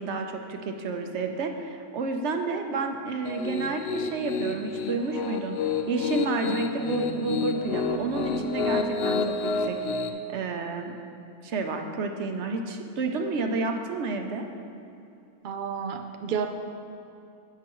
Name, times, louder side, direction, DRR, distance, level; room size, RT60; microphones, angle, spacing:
voice 1, 0.0-5.6 5.9-9.8 10.3-10.9 11.4-14.5, right 3 dB, 55° right, 4 dB, 0.9 m, -30 dB
Piano, 3.2-10.1, left 5 dB, 65° left, 0.6 m, -29 dB
voice 2, 15.4-16.5, right 7 dB, 75° right, 5 dB, 0.4 m, -30 dB
17.0 x 5.9 x 3.0 m, 2.6 s
omnidirectional pair, 1.6 m